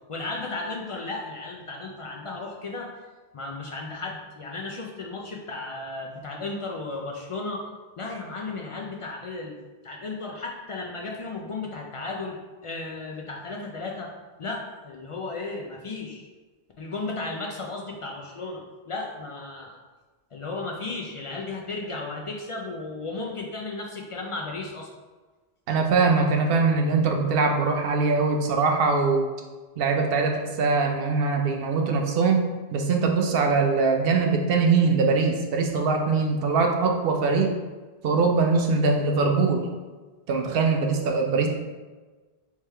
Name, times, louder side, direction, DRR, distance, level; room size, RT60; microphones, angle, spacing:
voice 1, 0.1-2.9 3.3-7.6 8.0-9.6 9.8-12.4 12.6-14.1 14.4-16.3 16.8-19.8 20.3-24.9, left 3 dB, 55° left, -1 dB, 0.3 m, -34 dB
voice 2, 25.7-29.3 29.8-37.6 38.0-39.7 40.3-41.5, right 4 dB, 70° right, 3 dB, 0.8 m, -22 dB
3.4 x 3.2 x 3.2 m, 1.3 s
omnidirectional pair, 1.1 m